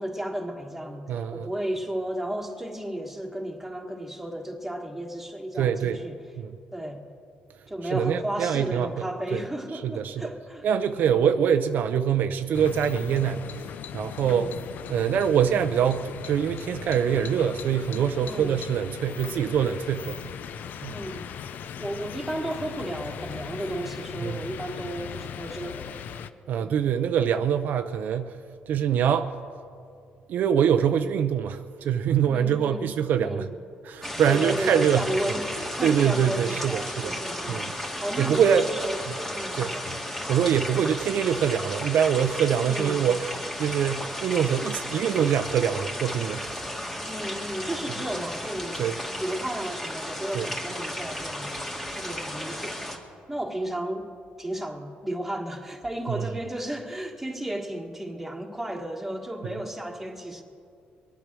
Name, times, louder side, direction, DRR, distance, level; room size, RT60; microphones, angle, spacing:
voice 1, 0.0-6.2 6.7-7.0 7.7-10.7 10.9-11.2 14.2-14.5 18.2-18.6 20.9-21.3 21.8-26.0 26.6-26.9 32.3-32.9 33.2-33.5 34.3-39.0 39.3-39.9 42.6-43.1 47.0-48.9 49.2-51.5 51.9-52.9 53.3-54.1 54.4-60.4, right 1 dB, 5° right, 2 dB, 1.6 m, -33 dB
voice 2, 1.1-1.5 5.6-6.0 6.4-6.5 7.9-9.0 9.3-9.4 9.8-10.3 10.6-13.4 13.9-14.5 14.9-20.2 20.8-21.0 24.2-24.3 26.5-28.4 28.7-29.3 30.3-33.5 33.8-35.1 35.8-37.1 37.5-37.7 38.2-38.7 39.5-39.8 40.3-43.3 43.6-46.5 48.8-49.0 50.3-50.5 56.2-56.3, right 8 dB, 65° right, 8 dB, 0.6 m, -24 dB
sound 1, 12.5-26.3, left 8 dB, 65° left, 0.6 m, -38 dB
sound 2, 34.0-53.0, equal, 10° left, 2.1 m, -34 dB
22.5 x 9.2 x 6.2 m, 2.4 s
cardioid pair, 100°, 3 cm